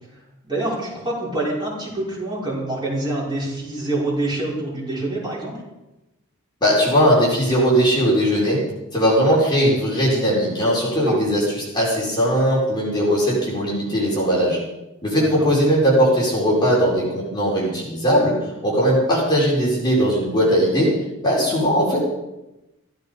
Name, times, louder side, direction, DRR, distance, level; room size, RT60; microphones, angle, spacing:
voice 1, 0.4-5.6 9.3-9.4 11.0-11.2 15.2-15.5, right 2 dB, 20° right, -6 dB, 5.5 m, -26 dB
voice 2, 6.6-8.6 8.9-14.6 15.0-18.4 18.6-21.0 21.2-22.0, equal, 20° left, -5 dB, 4.5 m, -19 dB
16.0 x 13.5 x 5.3 m, 0.97 s
head